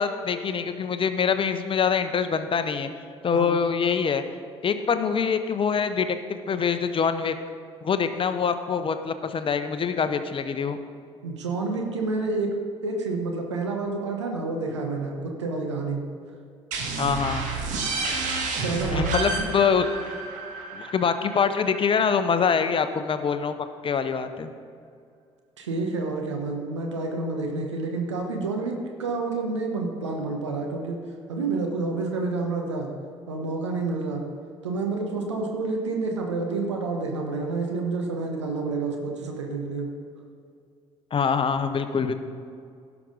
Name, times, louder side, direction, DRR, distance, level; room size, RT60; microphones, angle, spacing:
voice 1, 0.0-2.9 3.2-4.2 4.6-7.4 7.8-10.8 17.0-17.4 18.9-20.0 20.7-23.5 23.8-24.5 41.1-42.1, left 6 dB, 35° left, 10 dB, 0.8 m, -24 dB
voice 2, 11.2-12.5 12.8-16.1 18.6-19.5 25.6-31.0 31.3-32.9 33.3-34.2 34.6-39.9, right 3 dB, 85° right, 2 dB, 1.1 m, -29 dB
sound 1, 16.7-22.2, right 4 dB, 60° right, 1.6 m, -30 dB
16.5 x 6.0 x 3.9 m, 2.4 s
figure-of-eight pair, 50°, 15 cm